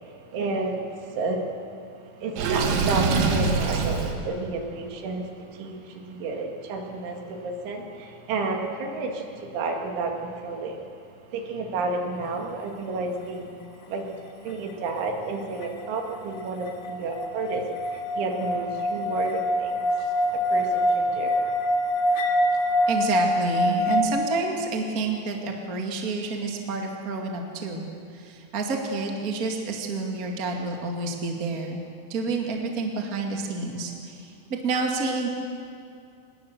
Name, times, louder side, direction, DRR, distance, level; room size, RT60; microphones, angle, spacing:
voice 1, 0.3-1.5 2.2-10.8 11.3-13.6 13.9-14.1 14.4-19.9 20.3-21.4 21.9-22.0, right 3 dB, 70° right, 2 dB, 4.4 m, -31 dB
Water / Sink (filling or washing), 2.4-4.1, right 4 dB, 90° right, 4.6 m, -23 dB
sound 1, 15.6-24.0, equal, 80° left, 4.1 m, -25 dB
voice 2, 22.9-31.8 32.1-35.3, right 3 dB, 40° right, 1 dB, 1.3 m, -29 dB
25.5 x 20.5 x 6.9 m, 2.4 s
omnidirectional pair, 5.7 m